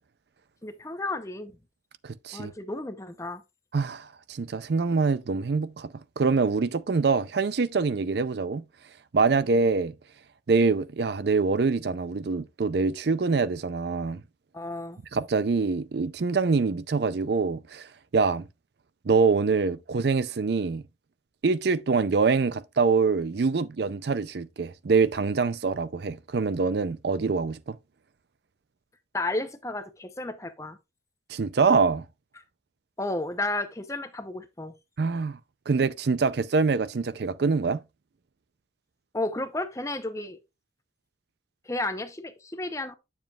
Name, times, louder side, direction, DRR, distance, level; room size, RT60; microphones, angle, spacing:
voice 1, 0.6-1.6 2.3-3.4 14.5-15.0 29.1-30.8 33.0-34.7 39.1-40.4 41.7-42.9, left 2 dB, 15° left, 0.7 m, -32 dB
voice 2, 2.0-2.5 3.7-8.6 9.1-9.9 10.5-14.2 15.1-18.5 19.1-20.8 21.4-27.8 31.3-32.0 35.0-35.4 35.7-37.8, right 4 dB, 60° right, 0.5 m, -25 dB
9.0 x 7.2 x 2.4 m
head